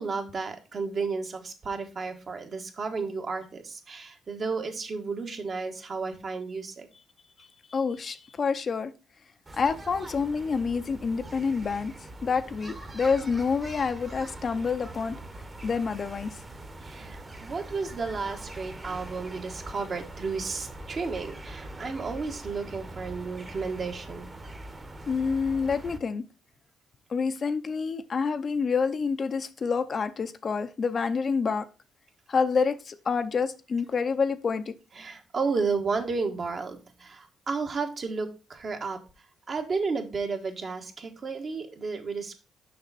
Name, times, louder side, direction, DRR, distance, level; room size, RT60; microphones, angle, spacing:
voice 1, 0.0-6.9 16.8-24.3 35.0-39.0 39.5-42.3, right 4 dB, 45° right, 1.4 m, -32 dB
voice 2, 7.7-8.9 9.6-11.9 12.2-15.2 15.6-16.3 25.1-26.2 27.1-31.7 32.3-34.7, left 5 dB, 45° left, 0.6 m, -27 dB
sound 1, 9.5-26.0, right 1 dB, 25° right, 1.2 m, -42 dB
6.7 x 5.6 x 4.1 m
cardioid pair, 90°, 0 cm